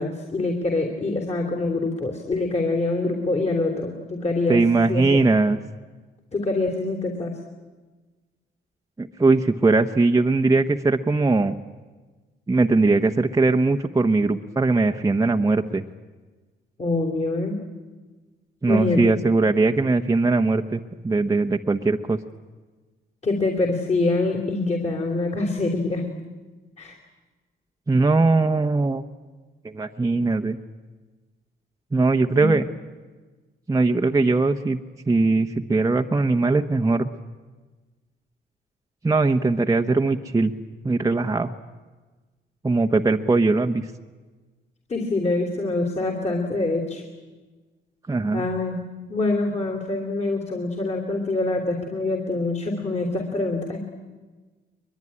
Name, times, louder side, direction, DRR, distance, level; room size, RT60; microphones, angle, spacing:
voice 1, 0.0-4.6 4.9-5.2 6.3-7.3 16.8-17.6 18.7-19.1 23.2-26.1 26.8-26.9 32.4-32.5 44.9-47.0 48.3-48.7 49.1-53.8, left 2 dB, 35° left, 0 dB, 3.3 m, -25 dB
voice 2, 4.5-5.6 9.0-11.5 12.5-15.8 18.6-20.8 21.0-22.2 27.9-29.0 29.7-30.6 31.9-32.6 33.7-34.8 35.1-37.1 39.0-40.5 40.8-41.5 42.6-43.8 48.1-48.4, right 3 dB, 15° right, 3 dB, 1.1 m, -20 dB
22.0 x 22.0 x 9.9 m, 1.3 s
cardioid pair, 90°, 20 cm